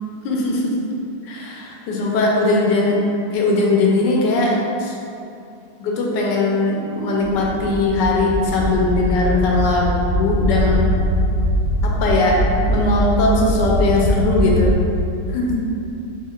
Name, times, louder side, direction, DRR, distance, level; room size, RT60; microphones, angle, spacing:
voice 1, 0.2-0.7 1.3-3.0 3.3-4.5 4.8-4.9 5.8-10.9 11.8-12.4 12.7-14.8 15.3-15.6, left 2 dB, 70° left, -2 dB, 1.2 m, -19 dB
sound 1, 7.2-14.7, equal, 45° right, 0.5 m, -21 dB
6.3 x 2.6 x 2.3 m, 2.7 s
omnidirectional pair, 2.1 m